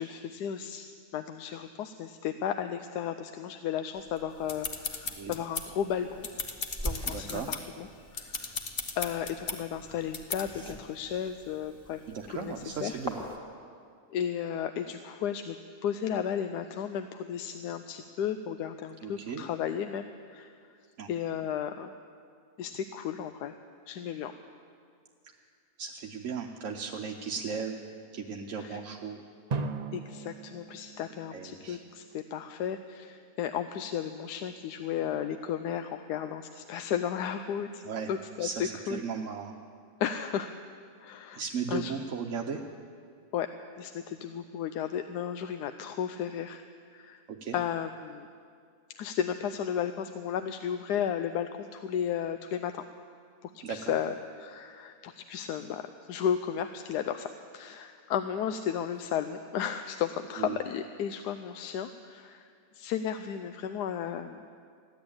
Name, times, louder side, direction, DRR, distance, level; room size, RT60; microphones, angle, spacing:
voice 1, 0.0-6.3 6.8-7.9 8.1-8.6 9.0-12.0 12.3-12.5 12.8-13.0 14.1-15.6 15.8-20.5 21.1-21.9 22.6-23.6 23.9-24.3 28.6-28.8 29.9-37.8 38.1-39.0 40.0-40.6 41.0-41.4 41.7-41.9 43.3-43.5 43.8-46.6 46.9-47.2 47.5-48.3 49.0-52.8 53.4-55.8 56.1-62.5 62.7-64.4, left 9 dB, 85° left, 9 dB, 1.1 m, -34 dB
sound 1, 4.1-5.8 6.2-7.6 8.1-9.6 10.1-10.4, left 5 dB, 40° left, 1.0 m, -36 dB
sound 2, 4.3-13.4, right 1 dB, 5° left, 1.6 m, -44 dB
voice 2, 7.1-7.5 12.1-13.2 19.0-19.4 21.0-21.1 25.8-27.8 28.1-29.2 31.3-31.8 37.8-38.1 38.4-39.5 41.4-42.6 47.3-47.6 53.6-54.0 60.4-60.6, right 6 dB, 60° right, 2 dB, 1.1 m, -36 dB
Drum, 29.5-32.2, right 4 dB, 85° right, 0.3 m, -38 dB
15.0 x 11.0 x 8.6 m, 2.2 s
omnidirectional pair, 1.7 m